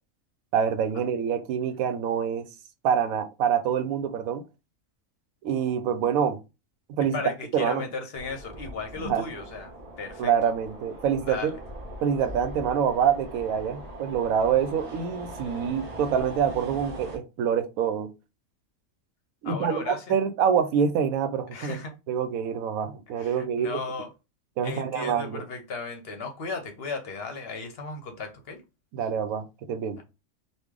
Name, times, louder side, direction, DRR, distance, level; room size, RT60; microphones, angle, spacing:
voice 1, 0.5-2.5 2.8-4.4 5.4-6.4 6.9-7.2 7.5-7.8 9.0-9.2 10.2-11.6 12.0-18.1 19.4-21.8 22.1-23.8 24.6-25.4 28.9-30.0, right 7 dB, 90° right, 1.0 m, -26 dB
voice 2, 7.1-10.3 11.2-11.6 19.4-20.1 21.5-21.9 23.1-24.1 24.6-28.6 30.0-30.1, left 4 dB, 55° left, 0.8 m, -35 dB
sound 1, 8.1-17.2, right 1 dB, 40° right, 0.6 m, -41 dB
3.1 x 2.4 x 3.6 m
omnidirectional pair, 1.4 m